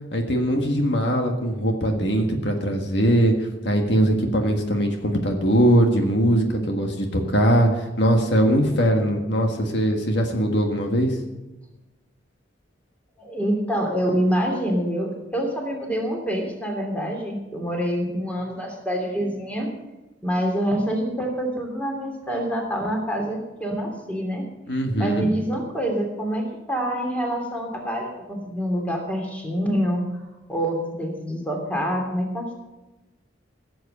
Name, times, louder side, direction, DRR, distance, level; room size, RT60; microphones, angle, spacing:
voice 1, 0.1-11.2 24.7-25.3, right 1 dB, 65° left, 3 dB, 1.6 m, -21 dB
voice 2, 13.2-19.7 20.2-24.5 25.0-30.2 30.5-32.5, equal, 10° left, 1 dB, 2.8 m, -26 dB
16.0 x 8.0 x 6.8 m, 1.1 s
head